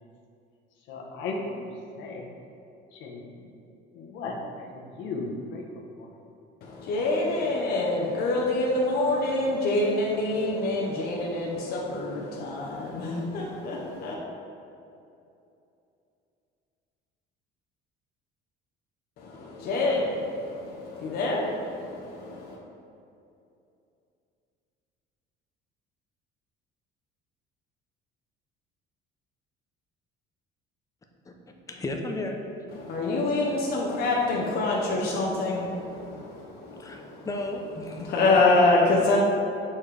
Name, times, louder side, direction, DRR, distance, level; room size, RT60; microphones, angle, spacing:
voice 1, 0.9-1.7 2.0-2.3 2.9-3.5 3.9-5.6, left 3 dB, 70° left, 1.0 m, -36 dB
voice 2, 6.6-14.2 19.2-22.6 32.7-37.3 37.9-39.2, left 2 dB, 50° left, 0.8 m, -26 dB
voice 3, 31.7-32.4 36.8-38.1, left 2 dB, 15° left, 0.5 m, -34 dB
7.0 x 4.2 x 3.3 m
cardioid pair, 140°, 20 cm